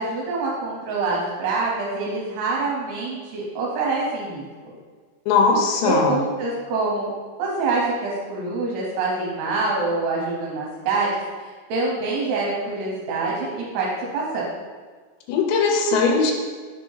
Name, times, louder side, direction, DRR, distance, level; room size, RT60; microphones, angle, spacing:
voice 1, 0.0-4.8 5.8-7.1 7.4-13.9 14.1-14.5, right 3 dB, 75° right, -4 dB, 2.7 m, -25 dB
voice 2, 5.3-6.2 15.3-16.3, left 4 dB, 85° left, 1 dB, 3.0 m, -19 dB
6.4 x 2.7 x 5.4 m, 1.5 s
omnidirectional pair, 5.1 m